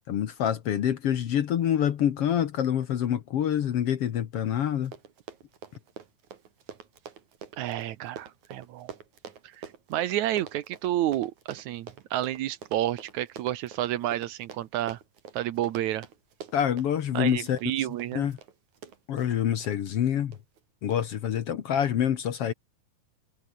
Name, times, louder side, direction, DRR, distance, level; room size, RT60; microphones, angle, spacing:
voice 1, 0.1-4.9 16.5-17.6 18.1-18.4 19.1-20.3 20.8-22.5, left 9 dB, 65° left, 1.5 m, -26 dB
Run, 4.5-4.6 4.8-19.8 20.3-20.6 20.9-21.0, right 7 dB, 55° right, 3.7 m, -46 dB
voice 2, 7.6-8.9 9.6-9.7 9.9-15.0 15.3-16.1 17.1-18.3, right 13 dB, 70° right, 1.9 m, -30 dB
omnidirectional pair, 4.4 m